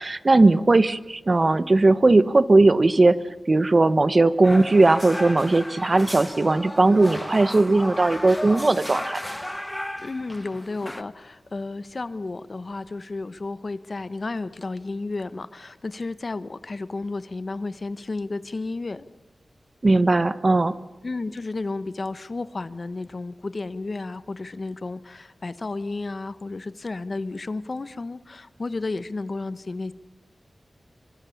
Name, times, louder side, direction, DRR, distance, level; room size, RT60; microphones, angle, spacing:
voice 1, 0.0-3.2 3.5-9.2 19.8-20.8, right 2 dB, 40° right, 14 dB, 1.0 m, -18 dB
sound 1, 4.4-11.0, left 1 dB, 10° left, 1.2 m, -34 dB
voice 2, 10.0-19.1 21.0-29.9, left 3 dB, 45° left, 14 dB, 0.9 m, -32 dB
26.5 x 24.5 x 7.1 m, 1.0 s
wide cardioid pair, 100°, 0 cm